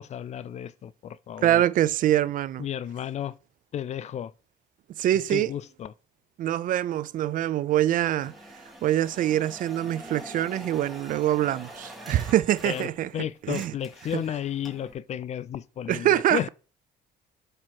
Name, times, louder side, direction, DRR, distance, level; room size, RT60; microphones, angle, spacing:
voice 1, 0.0-1.6 2.6-3.4 3.7-4.3 5.3-5.9 12.6-16.5, left 10 dB, 40° left, 0.4 m, -33 dB
voice 2, 1.4-2.7 5.0-5.5 6.4-8.3 8.8-13.1 13.4-13.7 14.1-14.2 15.9-16.5, right 12 dB, 55° right, 0.4 m, -24 dB
sound 1, 8.2-13.2 13.4-14.9, equal, ahead, 1.4 m, -45 dB
7.5 x 2.9 x 4.6 m
cardioid pair, 110°, 17 cm